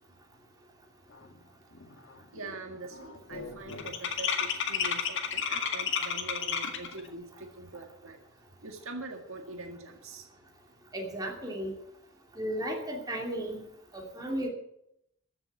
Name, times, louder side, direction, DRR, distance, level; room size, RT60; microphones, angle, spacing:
sound 1, 1.3-1.4 1.7-2.1 2.4-7.0, left 7 dB, 60° left, 1.8 m, -32 dB
voice 1, 2.3-8.2 8.6-10.3, right 2 dB, 70° right, 4 dB, 1.9 m, -43 dB
voice 2, 10.9-11.7 12.4-13.6 13.9-14.5, right 1 dB, 20° right, 0 dB, 2.7 m, -34 dB
15.0 x 7.2 x 9.0 m, 0.77 s
head